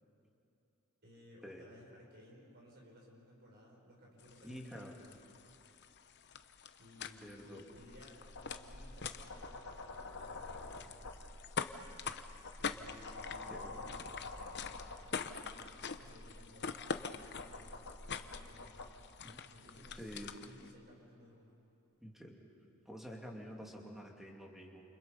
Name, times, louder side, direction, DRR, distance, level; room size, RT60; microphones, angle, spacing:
voice 1, 1.0-5.2 6.8-10.9 12.6-14.6 15.0-18.9 19.5-21.6, left 1 dB, 50° right, -2 dB, 5.7 m, -59 dB
sound 1, 4.2-20.7, left 6 dB, 50° left, 0.9 m, -46 dB
voice 2, 4.4-4.9 7.2-7.6 13.5-13.7 19.2-19.4 20.0-20.3 22.0-22.4 22.9-24.8, equal, ahead, -1 dB, 2.8 m, -48 dB
sound 2, 7.9-18.9 19.8-20.1, left 2 dB, 85° left, 2.4 m, -49 dB
29.5 x 28.5 x 5.4 m, 3.0 s
head